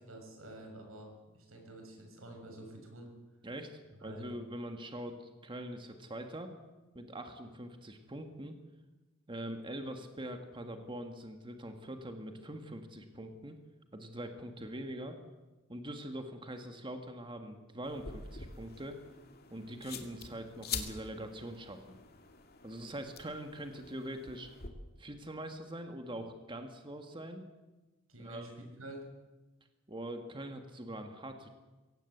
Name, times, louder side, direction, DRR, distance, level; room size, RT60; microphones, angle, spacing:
voice 1, 0.1-3.1 4.0-4.4 28.1-28.5 28.8-29.0, right 1 dB, 90° right, 2 dB, 7.2 m, -48 dB
voice 2, 3.4-6.5 6.9-8.6 9.3-13.6 13.9-15.2 15.7-19.0 19.5-22.0 22.6-24.5 25.0-27.5 28.2-28.5 29.9-31.5, right 1 dB, 25° right, 6 dB, 1.8 m, -43 dB
sound 1, 17.8-24.7, left 6 dB, 50° left, 2.4 m, -46 dB
24.0 x 17.0 x 8.1 m, 1.2 s
head